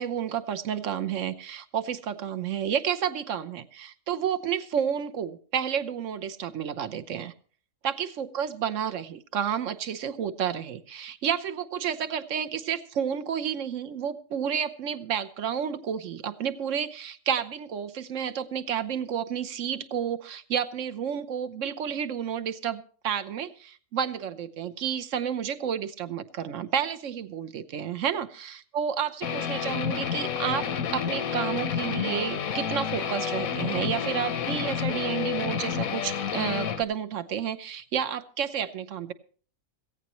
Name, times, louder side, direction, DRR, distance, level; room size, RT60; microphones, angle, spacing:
voice 1, 0.0-7.3 7.8-39.1, right 8 dB, 65° right, 13 dB, 1.2 m, -31 dB
Guitar, 29.2-36.8, left 8 dB, 85° left, 1.4 m, -30 dB
17.0 x 16.0 x 3.0 m, 0.43 s
omnidirectional pair, 1.4 m